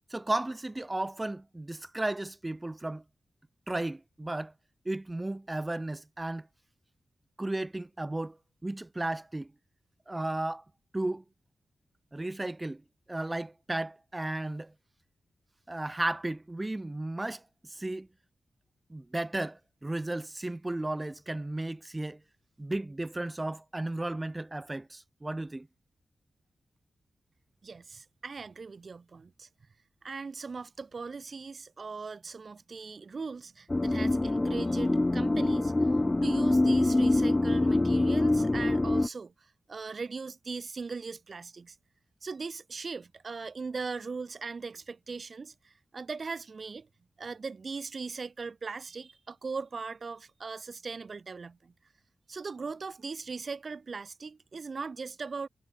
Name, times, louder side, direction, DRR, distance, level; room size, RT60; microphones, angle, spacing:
voice 1, 0.1-3.0 3.7-4.5 4.9-6.5 7.4-8.4 8.6-9.5 10.1-10.6 10.9-11.2 12.1-12.8 13.1-14.7 15.7-17.4 17.7-18.1 18.9-22.2 22.6-25.7, right 2 dB, 15° right, 7.1 m, -34 dB
voice 2, 27.6-29.5 30.0-35.7 36.2-41.8 42.2-46.9 47.2-51.7 52.3-55.5, right 4 dB, 45° right, 7.9 m, -39 dB
sound 1, 33.7-39.1, left 2 dB, 20° left, 0.6 m, -25 dB
wide cardioid pair, 130°, 0 cm